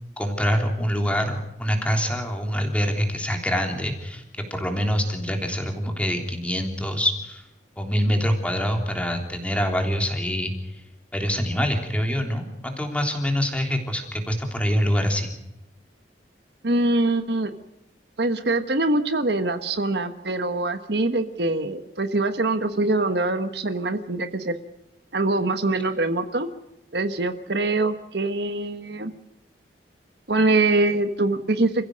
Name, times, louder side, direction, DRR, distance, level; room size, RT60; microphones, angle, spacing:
voice 1, 0.2-7.4 7.8-10.8 11.1-15.3, equal, 5° left, 3 dB, 3.4 m, -25 dB
voice 2, 16.6-17.5 18.2-24.5 25.1-26.5 26.9-29.1 30.3-31.8, right 2 dB, 65° right, 9 dB, 1.4 m, -23 dB
29.0 x 15.5 x 6.5 m, 0.91 s
head